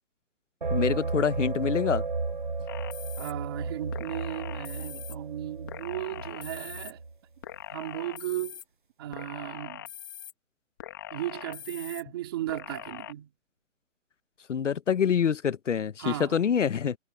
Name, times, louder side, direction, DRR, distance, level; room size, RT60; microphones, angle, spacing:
sound 1, 0.6-7.1, right 4 dB, 40° right, 0.5 m, -33 dB
voice 1, 0.7-2.0 14.5-17.0, left 7 dB, 65° left, 1.0 m, -26 dB
sound 2, 2.7-3.3 3.9-5.2 5.7-6.9 7.4-8.6 9.1-10.3 10.8-12.0 12.5-13.1, left 11 dB, 15° left, 1.5 m, -42 dB
voice 2, 3.2-7.0 7.7-8.6 9.0-9.9 11.1-13.3 16.0-16.4, right 14 dB, 20° right, 2.7 m, -36 dB
hypercardioid pair, 180°, 39 cm